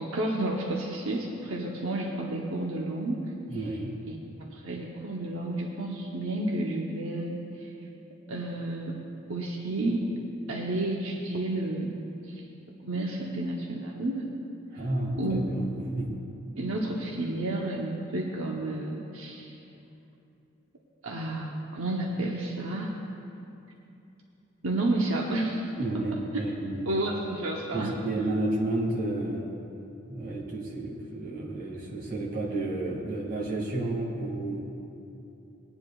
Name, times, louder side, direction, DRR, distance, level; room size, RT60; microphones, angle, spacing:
voice 1, 0.0-3.2 4.1-4.2 4.5-7.7 8.3-9.0 9.3-10.1 10.5-11.9 12.2-12.4 12.8-14.3 15.2-15.4 15.7-15.9 16.6-19.5 21.0-22.9 24.6-25.7 26.9-28.0, right 2 dB, 80° right, -2 dB, 1.0 m, -31 dB
voice 2, 3.5-4.0 14.7-16.3 25.8-26.9 27.7-29.5 30.1-34.7, right 2 dB, 45° right, -3 dB, 2.3 m, -31 dB
20.5 x 9.8 x 2.4 m, 2.8 s
head